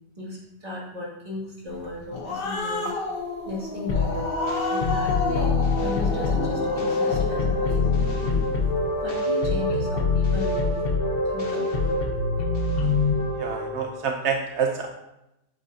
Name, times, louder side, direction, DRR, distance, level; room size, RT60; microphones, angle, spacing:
voice 1, 0.2-3.0 3.4-4.3 4.7-8.1 9.0-10.8 11.2-12.0, left 2 dB, 20° right, -5 dB, 2.3 m, -36 dB
Growling, 1.8-8.6, left 3 dB, 75° left, 1.7 m, -31 dB
sound 1, 3.9-14.0, left 3 dB, 40° left, 0.9 m, -25 dB
voice 2, 13.4-14.9, right 6 dB, 65° right, 4 dB, 0.7 m, -27 dB
8.5 x 8.3 x 2.8 m, 0.89 s
omnidirectional pair, 1.8 m